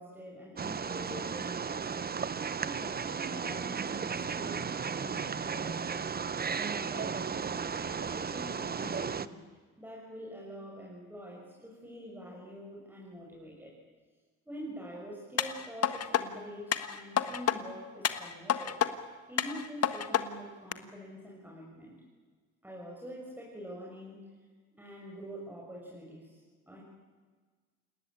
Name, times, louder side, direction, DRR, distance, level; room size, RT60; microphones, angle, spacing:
voice 1, 0.0-2.1 2.6-6.1 6.6-9.4 9.8-13.7 14.5-18.8 19.3-21.9 22.6-24.3 24.8-26.4 26.7-26.8, equal, 5° right, -4 dB, 6.4 m, -46 dB
Wild animals, 0.6-9.3, right 6 dB, 30° right, 1.0 m, -35 dB
sound 1, 15.4-16.2 16.7-17.6 18.0-18.9 19.4-20.2 20.7-20.8, left 9 dB, 55° left, 1.6 m, -29 dB
29.0 x 18.5 x 8.7 m, 1.5 s
cardioid pair, 90°, 30 cm